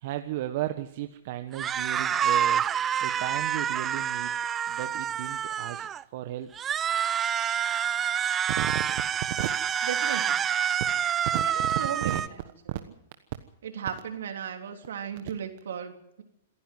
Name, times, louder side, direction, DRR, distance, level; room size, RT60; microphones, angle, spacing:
voice 1, 0.0-2.6 3.0-4.4 4.7-6.5 8.6-8.8 9.4-9.5 11.3-11.7 12.0-12.2, right 14 dB, 55° right, 8 dB, 1.3 m, -34 dB
sound 1, 1.5-6.0 6.5-12.3, right 9 dB, 20° right, 0.7 m, -27 dB
voice 2, 9.9-10.4 11.4-12.2 12.7-12.8 13.6-16.2, right 8 dB, 75° right, 5 dB, 3.3 m, -36 dB
27.0 x 10.5 x 9.3 m, 0.82 s
hypercardioid pair, 125°, 0 cm